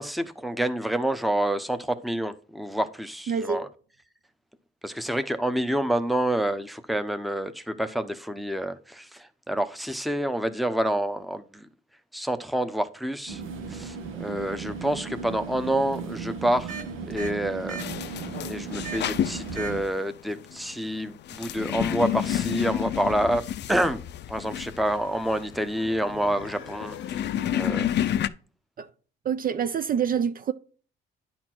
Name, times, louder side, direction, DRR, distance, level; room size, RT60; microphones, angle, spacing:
voice 1, 0.0-3.7 4.8-11.7 12.1-13.4 13.7-17.8 18.5-24.0 24.3-27.9, right 1 dB, ahead, 0.7 m, -28 dB
voice 2, 3.3-3.6 27.9-28.1 28.8-28.9 29.2-30.5, right 7 dB, 45° right, 0.5 m, -26 dB
sound 1, 13.3-19.8, right 5 dB, 85° right, 1.2 m, -36 dB
sound 2, 17.8-28.3, left 11 dB, 60° left, 0.5 m, -30 dB
sound 3, 22.9-28.0, left 8 dB, 90° left, 0.8 m, -43 dB
10.0 x 4.3 x 4.5 m
cardioid pair, 90°, 20 cm